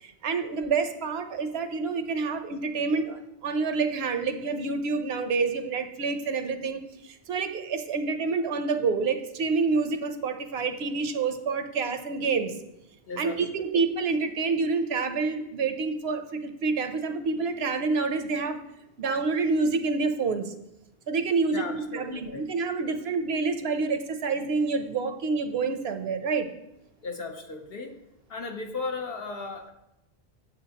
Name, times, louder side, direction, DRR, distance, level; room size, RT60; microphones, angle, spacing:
voice 1, 0.0-12.5 13.2-18.6 19.0-20.5 21.1-26.5, right 4 dB, 75° right, 8 dB, 1.0 m, -28 dB
voice 2, 13.1-13.4 13.8-13.9 21.5-22.4 27.0-27.9 28.3-29.7, left 4 dB, 65° left, 4 dB, 1.1 m, -36 dB
8.7 x 7.4 x 2.9 m, 0.88 s
omnidirectional pair, 1.1 m